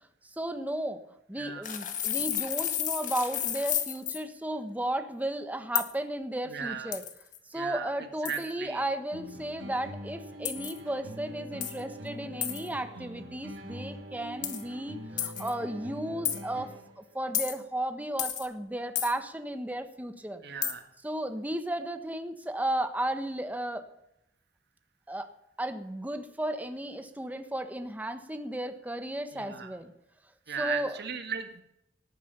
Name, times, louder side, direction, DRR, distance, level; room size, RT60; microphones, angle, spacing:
voice 1, 0.3-1.0 1.3-7.0 7.5-16.7 17.0-20.4 21.0-23.9 25.1-25.3 25.6-29.9 30.6-31.0, right 1 dB, 10° right, 8 dB, 1.4 m, -34 dB
sound 1, 1.6-4.2 5.8-5.9 6.9-7.4 8.3-8.5 10.4-10.8 11.6-11.8 12.4-12.7 14.4-14.6 15.2-15.5 16.2-16.4 17.3-17.6 18.2-18.5 19.0-19.1 20.6-20.7, left 10 dB, 45° left, 1.7 m, -31 dB
voice 2, 6.5-6.9 7.5-7.9 8.2-8.8 20.4-20.8 29.3-29.7 30.5-31.6, right 6 dB, 60° right, 7 dB, 1.9 m, -36 dB
sound 2, 9.1-17.1, right 1 dB, 85° right, 3.7 m, -44 dB
18.5 x 9.5 x 6.9 m, 0.80 s
head